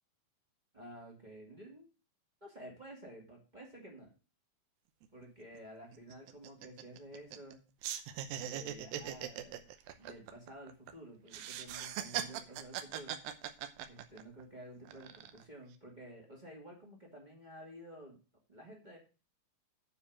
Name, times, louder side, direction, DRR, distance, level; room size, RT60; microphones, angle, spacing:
voice 1, 0.7-1.9 2.4-4.1 5.1-7.6 8.4-9.6 10.0-13.2 13.8-18.2 18.5-19.0, right 1 dB, 15° right, -1 dB, 1.8 m, -51 dB
sound 1, 5.0-5.1 5.4-5.6 5.9-7.5 7.8-10.9 11.3-14.4 14.9-15.4, right 10 dB, 75° right, 2.4 m, -41 dB
9.6 x 4.7 x 7.3 m, 0.34 s
omnidirectional pair, 4.5 m